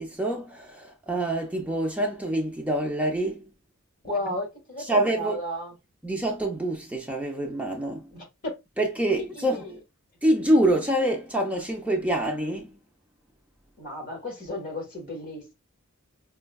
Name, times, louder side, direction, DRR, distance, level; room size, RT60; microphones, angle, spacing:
voice 1, 0.0-3.5 4.9-5.4 6.0-8.1 8.8-9.7 10.2-12.7, right 1 dB, 5° right, 0.5 m, -26 dB
voice 2, 4.0-5.7 8.1-8.5 9.1-9.8 13.8-15.5, left 1 dB, 40° left, 1.8 m, -34 dB
5.3 x 2.2 x 2.3 m
head